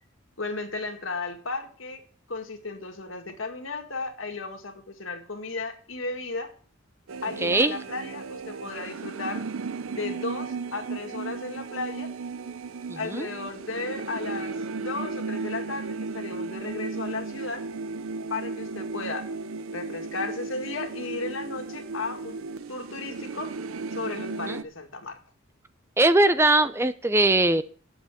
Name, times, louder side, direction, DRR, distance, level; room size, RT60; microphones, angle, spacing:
voice 1, 0.4-2.0 2.3-6.5 7.2-9.4 9.9-12.1 13.0-17.7 18.3-19.3 19.7-22.4 22.7-23.5 23.9-25.2, left 3 dB, 70° left, 5 dB, 2.0 m, -34 dB
sound 1, 7.1-24.6, right 4 dB, 85° right, 0.6 m, -35 dB
voice 2, 7.4-7.7 12.9-13.3 24.5-24.6 26.0-27.6, right 2 dB, 10° right, 13 dB, 0.4 m, -21 dB
9.3 x 7.3 x 7.5 m, 0.44 s
head